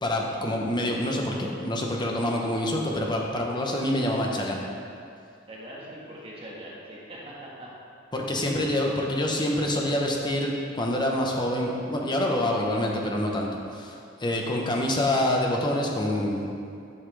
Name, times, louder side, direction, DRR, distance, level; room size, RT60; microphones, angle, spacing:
voice 1, 0.0-4.6 8.1-16.5, left 1 dB, 25° left, -1 dB, 0.9 m, -26 dB
voice 2, 5.5-7.7, right 1 dB, 30° right, -6 dB, 1.5 m, -42 dB
11.0 x 5.7 x 3.3 m, 2.4 s
head